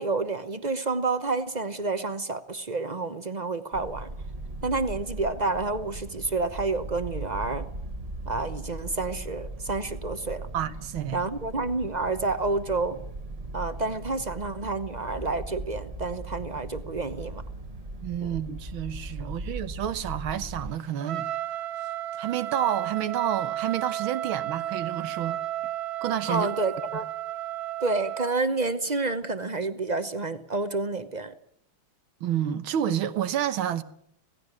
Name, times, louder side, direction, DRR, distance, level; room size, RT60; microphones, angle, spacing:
voice 1, 0.0-4.1 4.6-7.7 8.3-10.5 11.1-13.0 13.5-17.4 18.2-18.4 19.2-19.3 26.3-27.1 27.8-31.3, right 3 dB, 40° right, 0.6 m, -29 dB
sound 1, 3.7-20.7, right 2 dB, 25° right, 1.1 m, -39 dB
voice 2, 10.5-11.2 18.0-21.3 22.2-25.4 26.0-26.5 32.2-33.8, right 10 dB, 85° right, 1.9 m, -29 dB
Trumpet, 21.0-28.3, right 13 dB, 55° right, 1.3 m, -33 dB
17.5 x 16.0 x 9.8 m
omnidirectional pair, 2.2 m